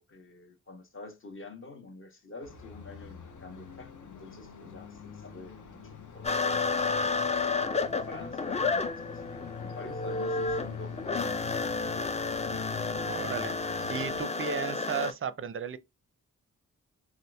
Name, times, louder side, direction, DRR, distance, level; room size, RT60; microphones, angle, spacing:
voice 1, 0.0-7.3 7.9-12.1, left 3 dB, 40° left, 0.9 m, -47 dB
sound 1, 2.4-14.2, left 6 dB, 60° left, 0.7 m, -44 dB
sound 2, 6.2-15.1, left 4 dB, 20° left, 0.4 m, -31 dB
voice 2, 13.1-15.8, right 6 dB, 40° right, 0.4 m, -35 dB
2.8 x 2.4 x 3.3 m
cardioid pair, 50°, 33 cm